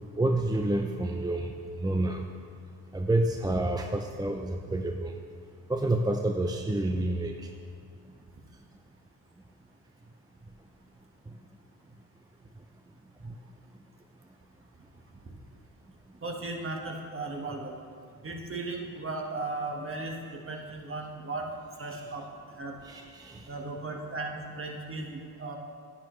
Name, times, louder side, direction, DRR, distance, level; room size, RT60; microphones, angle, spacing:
voice 1, 0.2-2.2 2.9-5.1 5.7-7.5 22.8-23.5, right 1 dB, 10° right, 3 dB, 0.4 m, -28 dB
voice 2, 16.2-17.8 18.2-21.5 21.8-22.3 22.6-22.8 23.5-25.6, right 2 dB, 30° right, 1 dB, 1.5 m, -36 dB
9.8 x 9.2 x 3.2 m, 2.2 s
supercardioid pair, 65°, 42 cm